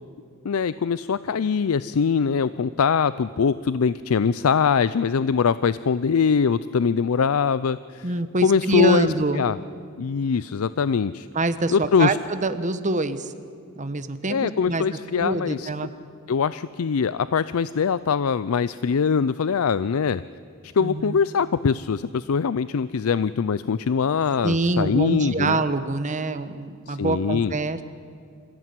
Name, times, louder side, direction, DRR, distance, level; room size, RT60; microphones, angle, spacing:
voice 1, 0.4-8.1 8.4-9.1 9.3-9.6 10.0-11.3 11.7-12.2 14.3-15.7 16.3-20.2 20.6-25.6 26.9-27.5, left 6 dB, 85° left, 16 dB, 0.5 m, -22 dB
voice 2, 8.0-9.4 11.3-13.3 13.8-14.8 15.1-15.9 20.8-21.2 24.4-27.8, right 2 dB, 35° right, 11 dB, 1.1 m, -25 dB
26.5 x 15.5 x 9.6 m, 2.4 s
head